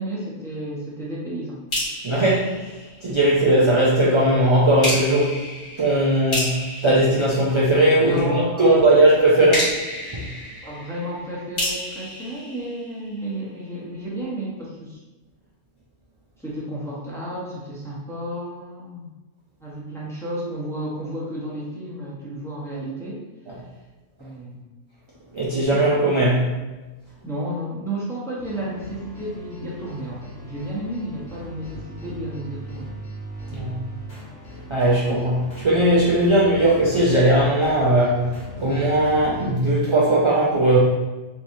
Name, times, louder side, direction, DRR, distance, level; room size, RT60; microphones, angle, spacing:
voice 1, 0.0-1.6 8.1-9.1 10.6-15.0 16.4-19.1 19.6-23.2 24.2-24.6 25.7-25.8 27.2-32.9, right 1 dB, 5° left, -7 dB, 0.6 m, -32 dB
sound 1, 1.7-3.4 4.8-8.1 9.5-13.4, left 1 dB, 85° left, 2.0 m, -31 dB
voice 2, 2.0-2.5 3.0-5.4 5.8-6.6 6.8-9.7 10.1-10.3 25.3-26.5 33.5-33.8 34.7-40.8, right 1 dB, 50° right, -7 dB, 0.3 m, -18 dB
sound 2, 28.4-39.5, equal, 60° left, 1.3 m, -39 dB
3.5 x 3.1 x 2.6 m, 1.2 s
omnidirectional pair, 1.3 m